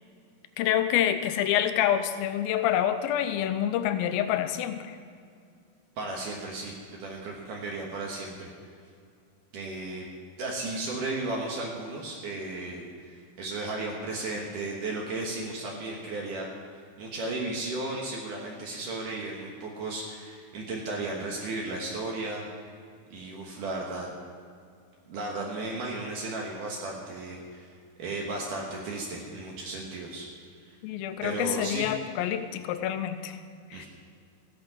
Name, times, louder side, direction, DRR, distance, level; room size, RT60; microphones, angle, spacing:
voice 1, 0.6-5.0 30.8-33.4 33.7-33.9, left 10 dB, 85° left, 9 dB, 2.6 m, -27 dB
voice 2, 6.0-8.5 9.5-10.0 10.4-16.5 16.7-22.4 23.1-24.1 25.1-27.7 28.0-30.3 30.7-30.8 31.2-31.9 33.7-33.9, right 2 dB, 65° right, -2 dB, 2.8 m, -35 dB
14.5 x 8.7 x 6.1 m, 2.3 s
omnidirectional pair, 4.2 m